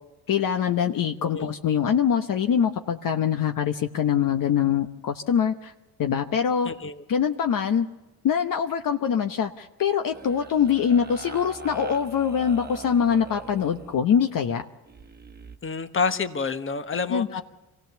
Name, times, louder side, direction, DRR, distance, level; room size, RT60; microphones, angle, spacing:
voice 1, 0.3-5.7 6.0-6.7 7.1-7.9 8.2-14.6 17.1-17.4, left 8 dB, 60° left, 6 dB, 1.0 m, -24 dB
voice 2, 6.6-7.0 15.6-17.4, left 5 dB, 30° left, 9 dB, 1.3 m, -28 dB
sound 1, 10.1-14.0 14.9-15.6, right 3 dB, 25° right, 1.3 m, -42 dB
24.0 x 16.5 x 7.0 m, 1.1 s
cardioid pair, 85°, 38 cm